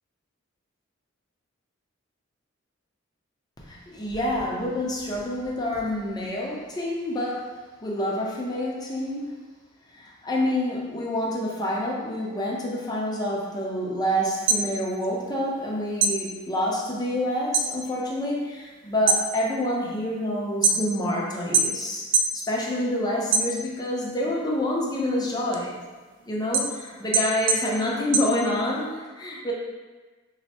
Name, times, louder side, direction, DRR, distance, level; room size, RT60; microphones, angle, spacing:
voice 1, 3.6-9.4 9.9-22.1 22.5-25.8 26.3-29.5, left 1 dB, 20° left, -4 dB, 0.5 m, -27 dB
sound 1, 14.4-15.7 16.0-17.7 18.1-18.5 18.9-21.1 21.5-22.4 22.8-24.0 24.4-28.9, right 4 dB, 65° right, 0.3 m, -24 dB
3.2 x 2.0 x 4.1 m, 1.3 s
head